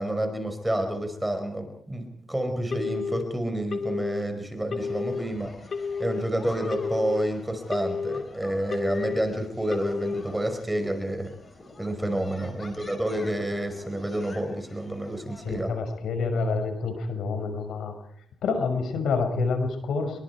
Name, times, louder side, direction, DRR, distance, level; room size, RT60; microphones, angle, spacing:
voice 1, 0.0-5.5 6.0-11.3 11.8-15.7, right 1 dB, 10° right, 6 dB, 5.3 m, -29 dB
Telephone, 2.7-3.2 3.7-4.2 4.7-5.2 5.7-6.2 6.7-7.2 7.7-8.2 8.7-9.2 9.7-10.2, left 5 dB, 50° left, 2.6 m, -30 dB
sound 1, 4.8-15.6, left 3 dB, 30° left, 5.1 m, -47 dB
voice 2, 15.4-17.9 18.4-20.2, left 4 dB, 80° left, 6 dB, 6.0 m, -28 dB
27.5 x 23.0 x 4.8 m, 0.67 s
cardioid pair, 110°, 0 cm